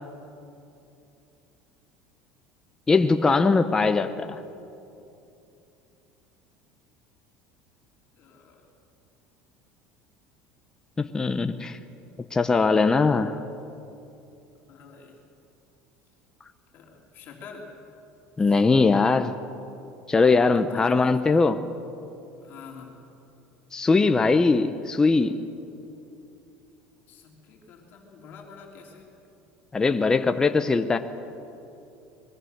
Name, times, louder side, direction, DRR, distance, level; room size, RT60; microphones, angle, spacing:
voice 1, 2.9-4.4 11.0-11.8 12.3-13.4 18.4-19.4 20.1-21.6 23.7-25.4 29.7-31.0, left 4 dB, 15° left, 8 dB, 0.7 m, -21 dB
voice 2, 8.2-8.6 14.7-15.2 16.7-17.7 18.5-18.6 20.7-21.3 22.4-23.0 27.1-29.1, left 5 dB, 45° left, 0 dB, 3.3 m, -46 dB
25.0 x 22.0 x 6.6 m, 2.8 s
cardioid pair, 145°, 5 cm